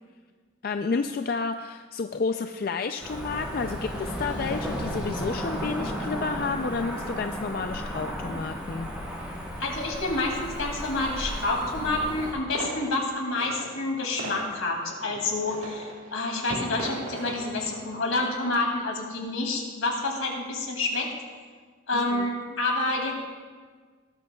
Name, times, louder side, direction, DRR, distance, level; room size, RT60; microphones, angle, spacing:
voice 1, 0.6-8.9 21.9-22.6, left 4 dB, 45° left, 7 dB, 0.4 m, -31 dB
Cricket / Motor vehicle (road), 3.0-12.3, equal, 5° right, 3.0 m, -34 dB
voice 2, 9.6-21.1 21.9-23.1, left 2 dB, 80° left, 0 dB, 2.5 m, -28 dB
sound 1, 12.1-18.5, right 1 dB, 80° right, 1.6 m, -39 dB
18.0 x 12.5 x 2.3 m, 1.5 s
head